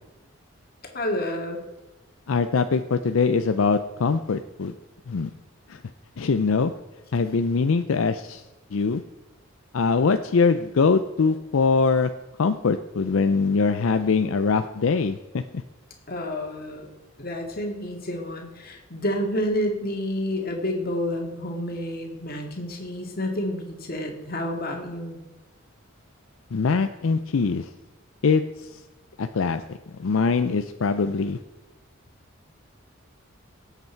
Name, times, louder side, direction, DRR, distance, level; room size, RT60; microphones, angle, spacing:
voice 1, 0.9-1.6 16.1-16.9 17.2-25.2, left 1 dB, 45° left, 2 dB, 2.1 m, -29 dB
voice 2, 2.3-4.7 5.1-5.3 5.7-5.8 6.2-6.7 7.1-8.4 8.7-9.0 9.7-12.1 12.4-15.4 26.5-27.7 28.2-28.8 29.2-29.6 30.0-31.4, left 4 dB, 75° left, 9 dB, 0.5 m, -22 dB
18.5 x 8.2 x 4.5 m, 1.1 s
head